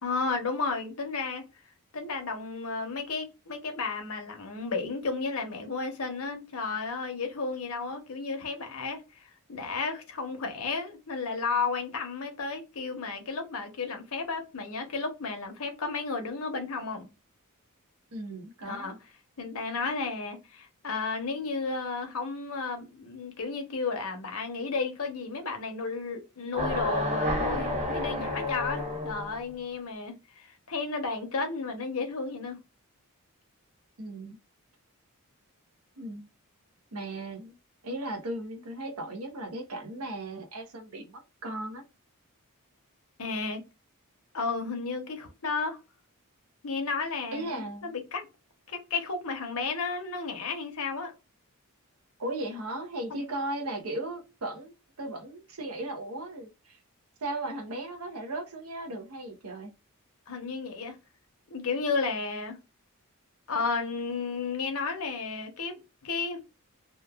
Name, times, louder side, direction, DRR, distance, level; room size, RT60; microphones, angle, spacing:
voice 1, 0.0-1.4 1.9-17.1 18.7-18.9 19.4-32.6 43.2-43.6 44.3-45.8 46.6-48.2 48.7-51.1 60.3-61.0 61.5-62.6 63.5-66.4, left 4 dB, 70° left, 0.8 m, -33 dB
voice 2, 18.1-18.9 34.0-34.4 36.0-36.3 36.9-37.5 37.8-41.8 47.3-47.9 52.2-54.7 55.0-56.8 57.2-59.7, right 1 dB, 70° right, 0.7 m, -36 dB
sound 1, 26.5-29.4, left 1 dB, 30° right, 1.0 m, -30 dB
2.9 x 2.2 x 2.3 m
head